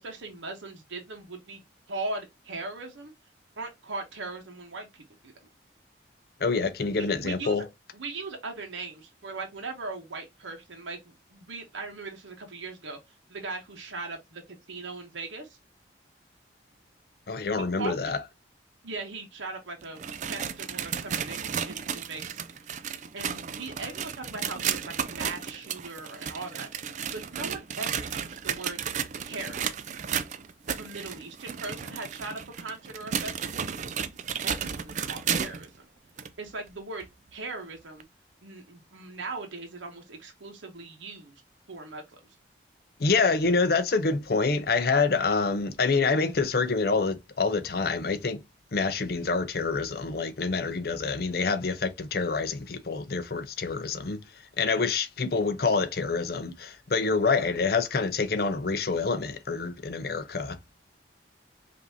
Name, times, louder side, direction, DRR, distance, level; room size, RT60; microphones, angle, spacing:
voice 1, 0.0-1.6 1.9-3.1 3.6-5.3 7.0-7.7 7.9-13.0 13.3-14.4 14.7-15.6 17.5-18.2 18.8-20.0 20.3-22.4 23.1-26.7 27.1-28.8 29.2-29.9 30.7-33.6 34.4-35.8 36.4-38.0 38.4-41.4 41.7-42.2, right 3 dB, 90° right, 0.9 m, -39 dB
voice 2, 6.4-7.7 17.3-18.2 43.0-48.4 48.7-54.2 54.6-60.6, left 4 dB, 55° left, 0.5 m, -27 dB
sound 1, 19.8-35.7 36.2-36.3 37.0-37.1 38.0-38.1, right 8 dB, 40° right, 0.3 m, -33 dB
5.1 x 2.6 x 2.7 m
head